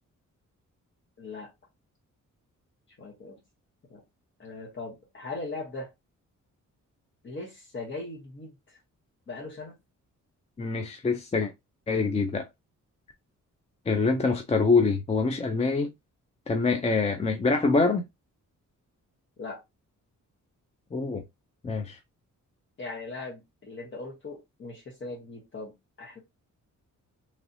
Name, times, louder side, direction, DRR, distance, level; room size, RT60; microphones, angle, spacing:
voice 1, 1.2-1.5 3.0-3.4 3.9-4.0 4.4-5.9 7.2-8.8 9.3-9.7 19.4-19.6 22.8-26.2, left 3 dB, 40° left, 1.0 m, -39 dB
voice 2, 10.6-11.5 11.9-12.5 13.9-15.9 16.5-18.0 20.9-21.2 21.6-22.0, left 4 dB, 20° left, 0.4 m, -25 dB
3.1 x 2.8 x 2.6 m
wide cardioid pair, 135°, 31 cm